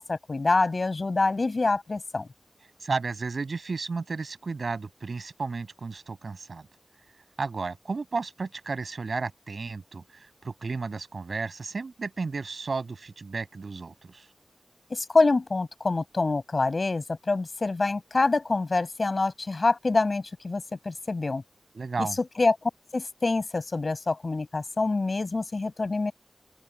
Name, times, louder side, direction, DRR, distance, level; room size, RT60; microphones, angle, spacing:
voice 1, 0.0-2.3 14.9-21.4 22.0-26.1, left 3 dB, 60° left, 7.9 m, -26 dB
voice 2, 2.8-6.7 7.4-14.3 21.8-22.2, right 4 dB, 80° right, 7.3 m, -33 dB
open air
wide cardioid pair, 75°, 0 cm